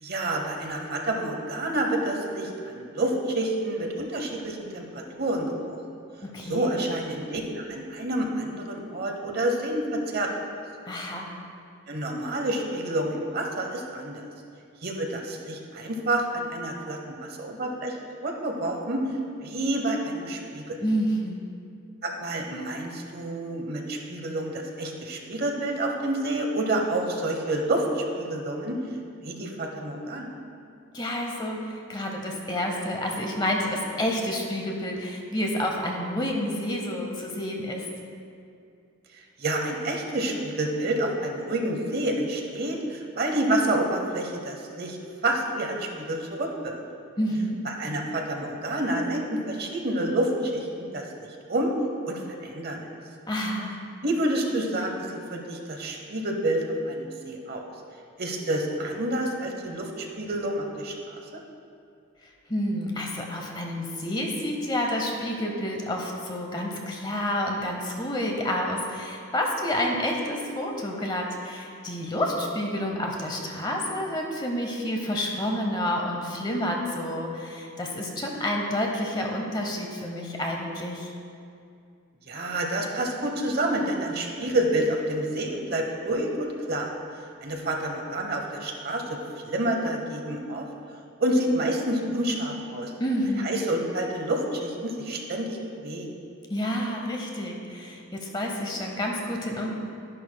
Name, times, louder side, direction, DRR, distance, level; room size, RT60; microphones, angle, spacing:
voice 1, 0.0-5.8 6.4-10.3 11.9-14.2 14.8-18.0 18.2-19.0 19.4-20.8 22.0-28.8 29.2-30.3 39.4-45.0 45.2-46.8 47.6-51.0 51.5-51.7 52.1-52.8 54.0-57.7 58.2-61.2 82.3-86.9 87.4-89.2 89.4-90.6 91.2-92.9 93.4-96.1, right 1 dB, 45° right, 2 dB, 0.9 m, -28 dB
voice 2, 6.2-6.7 10.9-11.3 20.8-21.4 30.9-37.9 47.2-47.7 53.3-53.7 62.2-81.1 93.0-93.5 96.5-99.7, left 1 dB, 20° left, 1 dB, 0.8 m, -29 dB
11.5 x 11.0 x 2.2 m, 2.4 s
head